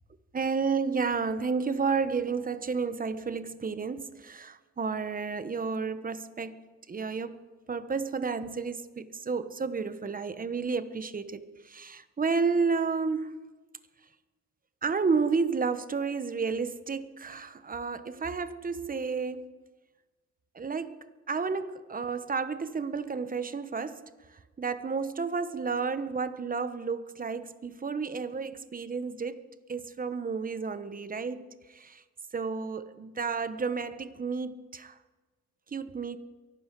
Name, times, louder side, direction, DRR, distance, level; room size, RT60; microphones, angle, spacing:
voice 1, 0.3-6.6 6.9-7.4 7.7-13.4 14.8-19.5 20.5-29.4 29.7-32.0 32.3-35.0 35.7-36.2, right 5 dB, 30° right, 0.9 m, -31 dB
23.0 x 12.0 x 4.6 m
cardioid pair, 90°, 30 cm